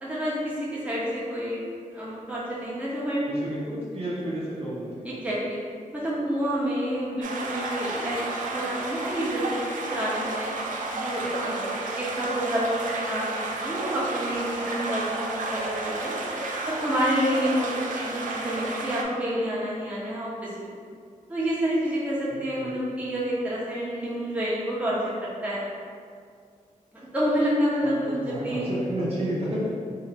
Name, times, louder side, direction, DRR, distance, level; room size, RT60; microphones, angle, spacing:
voice 1, 0.0-1.6 1.9-3.3 5.0-5.6 5.9-10.5 10.9-11.7 11.9-16.1 16.6-20.7 21.3-25.6 26.9-28.7, equal, 10° right, -8 dB, 1.0 m, -28 dB
voice 2, 3.3-4.9 22.6-22.8 27.8-29.6, right 1 dB, 45° right, -8 dB, 0.8 m, -31 dB
sound 1, 7.2-19.0, right 2 dB, 70° right, 0.4 m, -32 dB
3.2 x 2.8 x 2.9 m, 2.2 s
cardioid pair, 75°, 14 cm